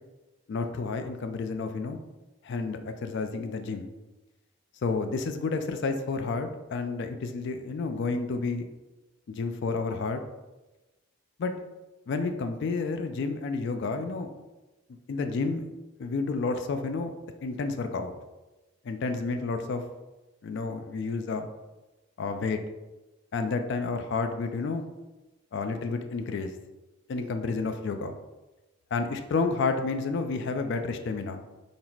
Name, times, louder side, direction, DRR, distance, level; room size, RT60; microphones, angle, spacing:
voice 1, 0.5-2.0 2.4-3.9 4.8-8.7 9.3-10.2 11.4-11.5 12.1-14.3 15.1-15.6 16.0-17.1 17.4-18.1 18.8-19.8 20.4-21.5 22.2-22.6 23.3-24.8 25.5-26.5 27.1-28.1 28.9-31.4, left 4 dB, 50° left, 7 dB, 0.3 m, -30 dB
3.9 x 2.0 x 4.4 m, 1.1 s
head